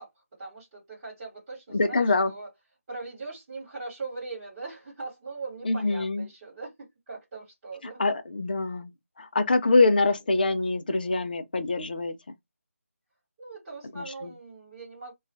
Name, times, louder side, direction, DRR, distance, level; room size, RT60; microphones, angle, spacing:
voice 1, 0.0-2.5 2.9-6.7 7.1-8.0 9.7-10.1 13.4-15.1, right 3 dB, 20° right, 1.0 m, -40 dB
voice 2, 1.7-2.3 5.7-6.3 8.0-8.9 9.2-12.1 14.0-14.3, left 3 dB, 40° left, 0.3 m, -24 dB
2.3 x 2.2 x 2.5 m
figure-of-eight pair, 160°, 8 cm